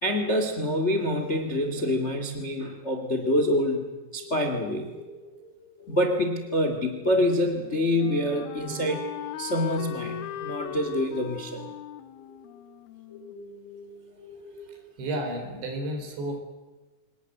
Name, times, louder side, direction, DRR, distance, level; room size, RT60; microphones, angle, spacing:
voice 1, 0.0-3.8 4.1-4.9 5.9-9.1 9.4-11.6, left 1 dB, 45° left, 5 dB, 0.9 m, -26 dB
sound 1, 3.0-15.5, left 2 dB, 25° left, 6.7 m, -47 dB
Wind instrument woodwind instrument, 7.1-13.9, left 12 dB, 75° left, 2.5 m, -40 dB
voice 2, 14.7-16.4, right 1 dB, 75° right, 5 dB, 6.2 m, -32 dB
25.5 x 20.0 x 7.9 m, 1.2 s
omnidirectional pair, 5.2 m